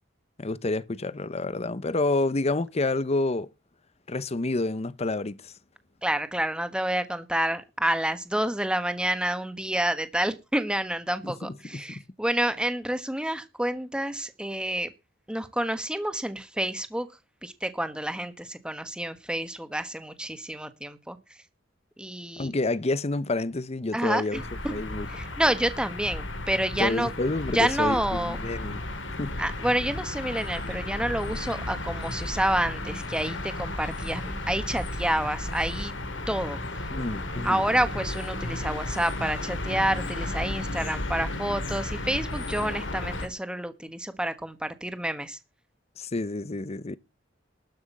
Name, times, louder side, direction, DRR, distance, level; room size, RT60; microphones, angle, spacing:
voice 1, 0.4-3.5 4.1-5.5 11.2-12.0 22.4-24.4 24.7-25.1 26.8-28.8 29.2-29.4 36.9-37.7 46.0-47.0, left 2 dB, 35° left, 0.8 m, -29 dB
voice 2, 6.0-14.9 15.3-17.1 17.4-21.2 22.0-22.5 23.9-24.4 25.1-27.1 27.5-28.4 29.4-35.9 36.3-36.6 37.4-45.4, right 1 dB, 5° right, 1.3 m, -28 dB
sound 1, 24.3-43.3, left 2 dB, 70° left, 3.0 m, -34 dB
13.0 x 6.2 x 8.4 m
head